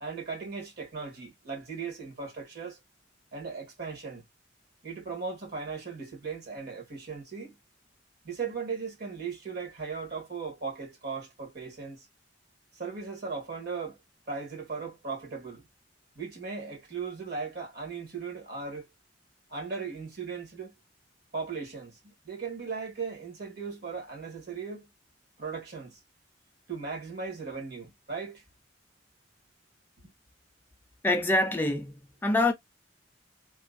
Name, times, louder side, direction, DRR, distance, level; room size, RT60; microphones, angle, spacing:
voice 1, 0.0-2.8 3.3-4.2 4.8-7.6 8.2-12.1 12.7-14.0 14.3-15.6 16.1-18.9 19.5-20.7 21.3-24.9 25.4-26.0 26.7-28.4, right 5 dB, 60° right, 1.7 m, -37 dB
voice 2, 31.0-32.5, left 2 dB, 10° left, 0.4 m, -25 dB
3.3 x 2.2 x 2.4 m
head